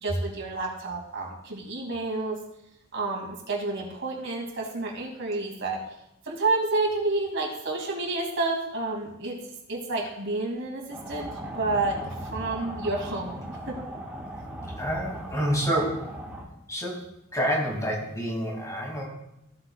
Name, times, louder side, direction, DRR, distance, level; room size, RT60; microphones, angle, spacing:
voice 1, 0.0-2.4 2.9-5.8 6.2-9.4 9.7-11.3 11.5-13.8, right 2 dB, 65° right, -1 dB, 2.7 m, -29 dB
sound 1, 10.9-16.4, right 1 dB, 5° right, 1.5 m, -38 dB
voice 2, 14.8-16.1 16.7-17.0 17.3-19.1, equal, 15° left, -1 dB, 2.5 m, -28 dB
15.0 x 7.8 x 2.4 m, 0.84 s
head